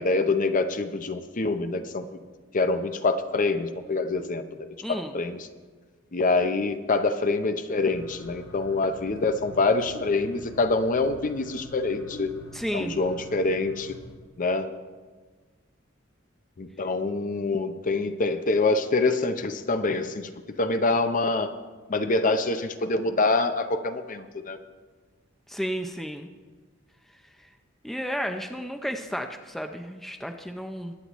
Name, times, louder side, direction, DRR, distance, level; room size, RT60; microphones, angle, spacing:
voice 1, 0.0-2.1 2.5-5.5 6.1-12.3 12.7-13.9 14.4-14.7 16.6-20.3 20.6-21.5 21.9-24.6, left 3 dB, 40° left, 9 dB, 0.7 m, -25 dB
voice 2, 4.8-5.2 12.5-13.0 25.5-26.3 27.4-27.5 27.8-30.9, equal, ahead, 5 dB, 0.5 m, -32 dB
sound 1, 7.8-14.1, left 1 dB, 80° left, 2.1 m, -44 dB
21.5 x 9.7 x 3.1 m, 1.4 s
head